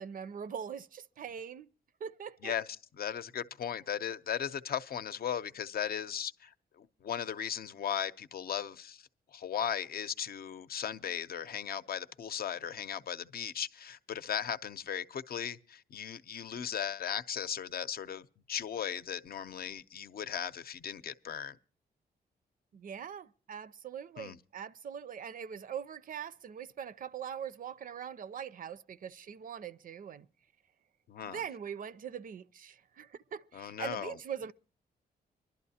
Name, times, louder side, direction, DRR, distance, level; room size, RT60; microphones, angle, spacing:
voice 1, 0.0-1.7 2.0-2.5 22.7-30.3 31.2-34.5, right 8 dB, 55° right, 0.5 m, -42 dB
voice 2, 3.0-9.0 9.3-21.6 24.2-24.4 31.1-31.4 33.5-34.1, left 8 dB, 65° left, 0.7 m, -37 dB
24.5 x 11.5 x 2.8 m
cardioid pair, 115°, 17 cm